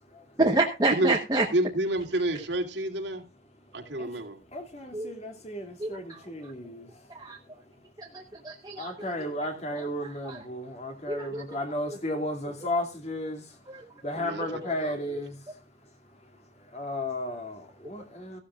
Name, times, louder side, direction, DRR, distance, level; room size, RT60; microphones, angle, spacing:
voice 1, 0.4-1.4 4.9-5.1 5.8-6.2 7.1-7.4 8.0-9.1 9.7-10.4 11.1-11.6 11.9-12.0 13.7-13.8, right 2 dB, 20° right, 1.1 m, -29 dB
voice 2, 1.5-3.2 3.7-4.4 14.2-15.2, right 1 dB, 85° right, 2.6 m, -29 dB
voice 3, 4.5-6.9 8.8-13.4 14.0-15.4 16.7-18.4, left 1 dB, 40° left, 2.5 m, -34 dB
15.0 x 12.0 x 2.4 m
head